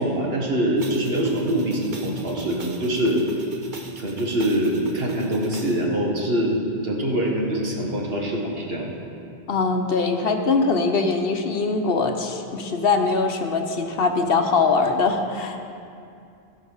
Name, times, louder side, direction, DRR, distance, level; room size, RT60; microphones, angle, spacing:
voice 1, 0.0-3.2 4.0-8.9, right 1 dB, 65° right, -1 dB, 1.8 m, -24 dB
sound 1, 0.8-5.8, right 3 dB, 50° right, 1.1 m, -37 dB
voice 2, 9.5-15.6, left 4 dB, 65° left, 5 dB, 1.0 m, -22 dB
16.0 x 5.7 x 5.5 m, 2.5 s
omnidirectional pair, 1.1 m